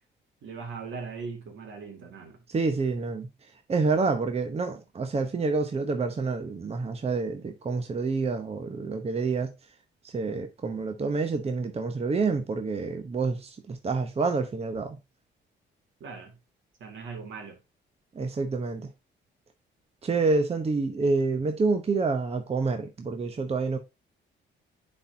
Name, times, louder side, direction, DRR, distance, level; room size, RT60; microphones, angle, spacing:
voice 1, 0.4-2.4 16.0-16.4 16.8-17.6, right 5 dB, 75° right, 2.3 m, -39 dB
voice 2, 2.5-3.3 3.7-9.5 10.1-15.0 18.1-18.9 20.0-23.8, right 4 dB, 30° right, 0.9 m, -28 dB
9.8 x 4.4 x 2.8 m
cardioid pair, 90°, 20 cm